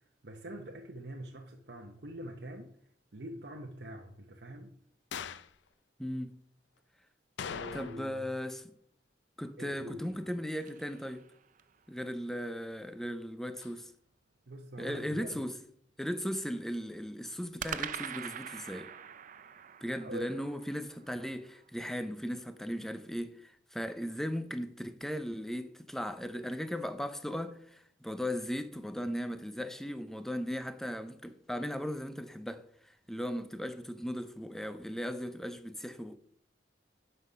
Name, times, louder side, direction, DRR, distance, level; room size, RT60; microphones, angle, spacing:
voice 1, 0.2-2.7 3.1-4.8 7.5-8.3 9.6-10.1 14.5-15.5 20.0-20.3, equal, 65° right, 0.9 m, -44 dB
sound 1, 5.1-5.6 7.4-8.2 8.5-8.6 13.6-13.7, left 7 dB, 85° left, 0.5 m, -41 dB
voice 2, 6.0-6.4 7.7-8.7 9.4-11.2 11.9-13.9 14.8-15.6 16.0-18.9 19.8-32.6 33.1-36.2, equal, ahead, 0.6 m, -37 dB
sound 2, 9.9-11.8 17.6-21.9, right 8 dB, 45° right, 0.5 m, -44 dB
9.8 x 5.5 x 5.6 m
head